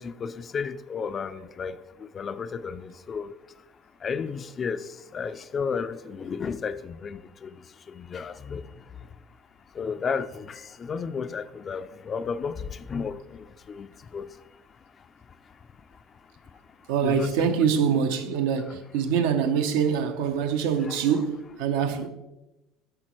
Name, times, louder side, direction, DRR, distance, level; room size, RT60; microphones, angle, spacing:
voice 1, 0.0-3.3 4.0-8.8 9.7-14.3 17.0-17.5 18.7-18.8 20.8-21.0, left 6 dB, 30° left, 0.3 m, -33 dB
voice 2, 16.9-22.1, right 7 dB, 85° right, 0.7 m, -24 dB
8.6 x 5.9 x 3.1 m
supercardioid pair, 120°, 0 cm